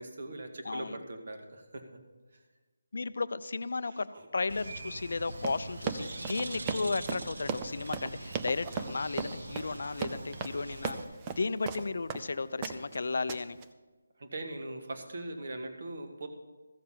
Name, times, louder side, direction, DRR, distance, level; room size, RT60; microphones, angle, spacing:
voice 1, 0.0-1.8 3.9-4.3 9.6-9.7 10.6-10.7 14.2-16.3, right 2 dB, 45° right, 5 dB, 1.6 m, -41 dB
voice 2, 0.6-1.0 2.9-11.0 11.3-13.6, left 3 dB, 55° left, 14 dB, 0.5 m, -34 dB
Bird, 4.5-11.0, right 2 dB, 65° right, 1.4 m, -43 dB
Run, 5.3-12.3 12.6-13.0 13.3-13.6, right 6 dB, 15° right, 0.5 m, -37 dB
14.5 x 6.8 x 5.7 m, 1.3 s
figure-of-eight pair, 175°, 0 cm